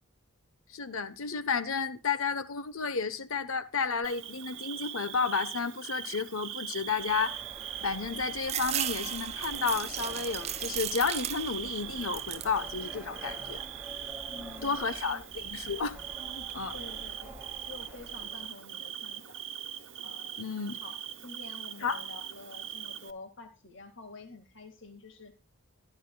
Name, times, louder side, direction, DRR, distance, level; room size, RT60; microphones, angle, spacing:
voice 1, 0.7-7.4 7.8-13.6 14.6-16.8 20.4-20.8 21.8-22.0, left 5 dB, 75° left, 1.1 m, -32 dB
Bird / Cricket, 4.0-23.1, right 11 dB, 60° right, 1.1 m, -41 dB
sound 1, 6.9-18.5, right 1 dB, 10° right, 2.8 m, -48 dB
sound 2, 8.4-11.7 12.0-12.6 13.1-13.8, right 11 dB, 30° right, 0.5 m, -36 dB
voice 2, 14.3-15.2 16.7-19.4 20.0-25.4, left 3 dB, 55° left, 2.0 m, -49 dB
15.0 x 12.0 x 2.3 m
head